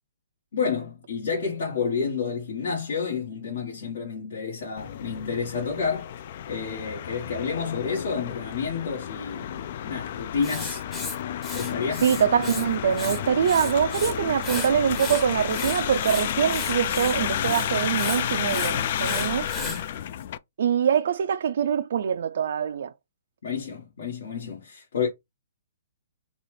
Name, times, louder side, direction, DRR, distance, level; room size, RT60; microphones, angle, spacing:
voice 1, 0.5-6.1 6.5-10.8 11.5-12.1 19.5-19.9 23.4-25.1, left 5 dB, 65° left, 1.5 m, -30 dB
sound 1, 4.8-20.4, left 10 dB, 45° left, 0.3 m, -31 dB
Writing, 10.4-12.7 12.9-14.1 14.4-19.8, left 2 dB, 10° left, 0.8 m, -35 dB
voice 2, 12.0-19.5 20.6-22.9, right 8 dB, 60° right, 0.4 m, -24 dB
4.0 x 2.4 x 3.2 m
hypercardioid pair, 165°, 0 cm